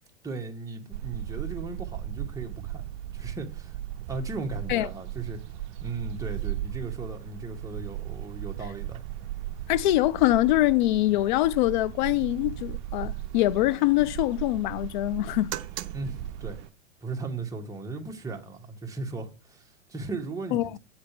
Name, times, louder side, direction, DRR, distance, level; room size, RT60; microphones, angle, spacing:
voice 1, 0.2-2.8 3.1-3.8 4.1-5.4 5.8-9.0 15.9-16.6 17.0-20.8, right 3 dB, 10° right, 1.4 m, -37 dB
sound 1, 0.9-16.7, right 13 dB, 40° right, 0.6 m, -37 dB
voice 2, 9.7-15.5 20.5-20.7, left 16 dB, 40° left, 0.5 m, -24 dB
7.9 x 4.3 x 6.6 m
hypercardioid pair, 105°, 38 cm